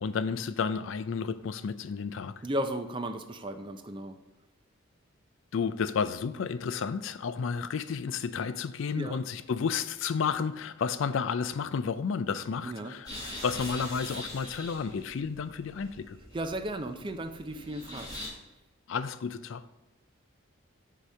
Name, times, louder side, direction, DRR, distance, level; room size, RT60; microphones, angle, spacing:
voice 1, 0.0-2.4 5.5-13.1 13.4-16.2 18.9-19.6, left 6 dB, 65° left, 0.4 m, -31 dB
voice 2, 2.4-4.2 8.9-9.2 12.6-12.9 16.3-18.2, right 1 dB, 25° right, 0.4 m, -35 dB
sound 1, 13.1-18.3, left 1 dB, 20° left, 2.5 m, -43 dB
8.1 x 2.9 x 6.2 m
head